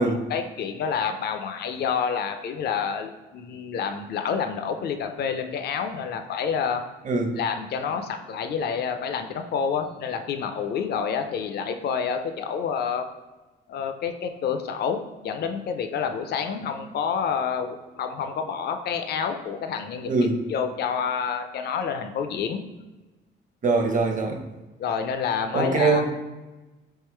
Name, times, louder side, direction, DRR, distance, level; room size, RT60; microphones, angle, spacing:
voice 1, 0.0-6.8 7.4-13.1 13.7-22.6 24.8-26.0, left 6 dB, 55° left, 7 dB, 0.4 m, -28 dB
voice 2, 7.0-7.4 20.0-20.4 23.6-24.4 25.5-26.1, right 3 dB, 40° right, 4 dB, 0.7 m, -22 dB
3.6 x 2.8 x 4.4 m, 1.1 s
cardioid pair, 90°, 20 cm